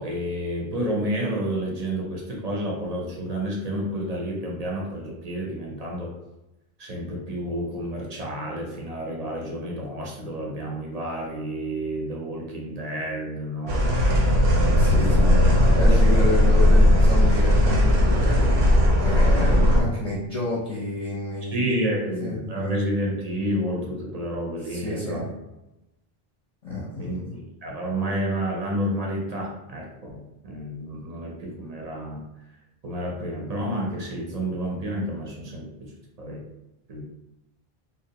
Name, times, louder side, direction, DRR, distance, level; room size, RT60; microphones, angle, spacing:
voice 1, 0.0-6.1 6.8-14.0 14.5-15.4 15.9-16.2 21.5-25.3 27.0-32.2 32.8-35.9 36.2-36.5 36.9-37.0, equal, 50° right, -1 dB, 0.5 m, -30 dB
sound 1, 13.7-19.8, left 1 dB, 90° right, 0.9 m, -17 dB
voice 2, 14.8-15.4 15.7-18.4 19.0-22.8 24.6-25.2 26.6-27.3, left 1 dB, 45° left, -7 dB, 0.6 m, -30 dB
2.5 x 2.0 x 2.7 m, 0.93 s
omnidirectional pair, 1.0 m